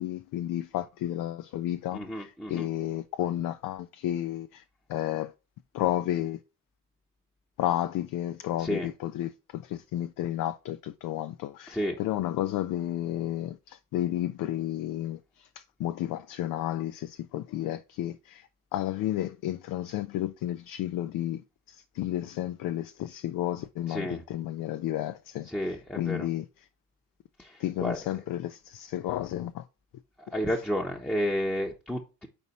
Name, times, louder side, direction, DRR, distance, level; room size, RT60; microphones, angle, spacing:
voice 1, 0.0-4.6 4.9-5.3 5.7-6.4 7.6-21.4 21.7-26.5 27.6-29.6, left 13 dB, 60° left, 0.5 m, -32 dB
voice 2, 1.9-2.7 8.6-8.9 11.7-12.0 23.9-24.2 25.5-26.3 27.4-28.0 30.2-32.3, equal, 5° left, 0.9 m, -31 dB
4.3 x 4.1 x 5.3 m
supercardioid pair, 75°, 37 cm